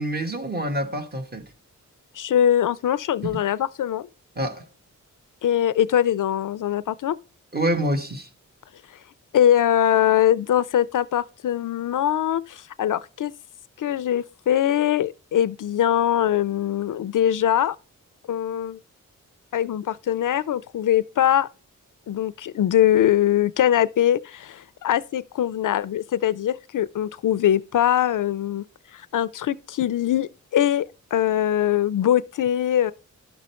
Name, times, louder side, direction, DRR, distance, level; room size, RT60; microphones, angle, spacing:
voice 1, 0.0-1.4 3.2-3.4 4.4-4.6 7.5-8.3, right 1 dB, 30° right, 1.2 m, -26 dB
voice 2, 2.2-4.1 5.4-7.2 9.3-13.3 13.8-17.8 18.3-18.8 19.5-21.5 22.1-28.6 28.9-32.9, left 11 dB, 75° left, 0.5 m, -22 dB
11.5 x 6.3 x 4.3 m
wide cardioid pair, 145°, 32 cm